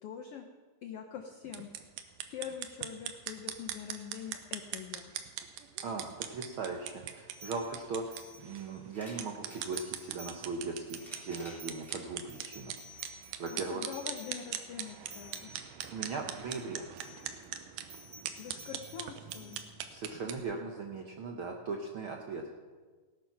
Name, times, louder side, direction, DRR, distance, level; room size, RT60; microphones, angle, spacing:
voice 1, 0.0-0.5 0.8-1.7 2.3-5.1 13.5-15.5 18.4-19.6, left 8 dB, 80° left, 6 dB, 1.3 m, -44 dB
sound 1, 1.4-20.4, right 10 dB, 85° right, 2.4 m, -42 dB
voice 2, 5.8-12.7 13.4-13.9 15.9-16.9 19.9-22.4, right 4 dB, 70° right, 2 dB, 1.2 m, -39 dB
sound 2, 7.3-9.1 9.4-10.5 10.8-16.6 16.9-17.5 17.9-19.6, right 1 dB, 35° right, 1.8 m, -53 dB
sound 3, 8.8-9.6 10.6-12.0 12.8-12.9 14.1-14.2, equal, ahead, 3.5 m, -53 dB
18.0 x 8.9 x 5.9 m, 1.4 s
omnidirectional pair, 3.6 m